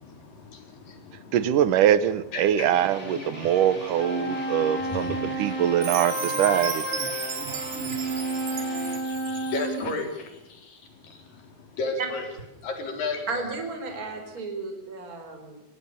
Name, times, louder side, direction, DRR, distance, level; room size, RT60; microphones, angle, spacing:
voice 1, 0.0-1.4 2.3-2.7 4.7-5.4 7.4-12.3 12.6-13.2, left 3 dB, 70° left, 5.7 m, -35 dB
voice 2, 1.3-6.8, right 10 dB, 70° right, 2.3 m, -23 dB
sound 1, 2.7-9.0, left 1 dB, 20° left, 4.3 m, -40 dB
sound 2, 3.7-9.9, right 1 dB, 45° left, 5.2 m, -31 dB
Chime, 5.8-9.9, right 9 dB, 55° right, 1.8 m, -35 dB
voice 3, 13.3-15.6, right 3 dB, 25° right, 4.4 m, -33 dB
25.0 x 18.5 x 6.9 m
omnidirectional pair, 4.1 m